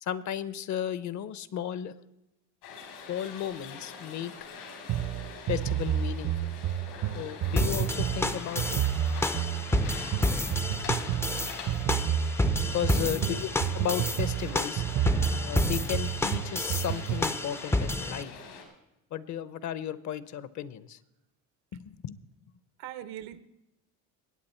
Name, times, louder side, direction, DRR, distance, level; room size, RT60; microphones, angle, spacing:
voice 1, 0.0-1.9 3.1-4.3 5.5-6.5 7.2-8.8 12.7-14.8 15.4-18.3 19.1-21.0 21.7-22.2, left 10 dB, 50° left, 17 dB, 0.8 m, -34 dB
sound 1, 2.6-18.6, left 5 dB, 85° left, 4.0 m, -45 dB
sound 2, 4.9-17.3, right 10 dB, 50° right, 0.7 m, -31 dB
sound 3, 7.6-18.2, left 2 dB, 5° left, 0.4 m, -30 dB
voice 2, 12.9-13.4 22.8-23.4, right 13 dB, 85° right, 14 dB, 1.0 m, -40 dB
21.0 x 8.6 x 4.3 m, 0.90 s
cardioid pair, 120°, 38 cm